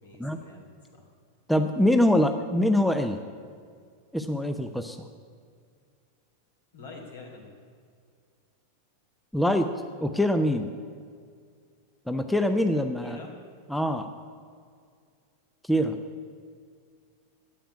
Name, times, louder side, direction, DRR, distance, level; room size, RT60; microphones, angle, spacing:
voice 1, 0.0-1.0 2.2-2.3 6.7-7.5 13.0-13.4, left 3 dB, 65° left, 1 dB, 3.0 m, -46 dB
voice 2, 1.5-3.2 4.1-5.0 9.3-9.7 10.0-10.7 12.1-13.2 13.7-14.1 15.6-16.0, left 1 dB, ahead, 7 dB, 0.6 m, -24 dB
10.5 x 8.8 x 9.7 m, 2.2 s
figure-of-eight pair, 90°, 0 cm